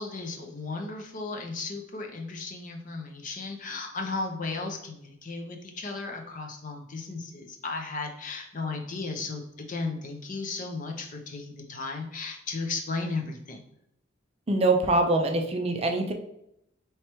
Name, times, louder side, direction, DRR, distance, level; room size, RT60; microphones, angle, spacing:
voice 1, 0.0-13.6, left 3 dB, 40° left, 3 dB, 0.6 m, -35 dB
voice 2, 14.5-16.1, right 2 dB, 30° right, 4 dB, 0.5 m, -24 dB
4.5 x 3.2 x 3.0 m, 0.79 s
head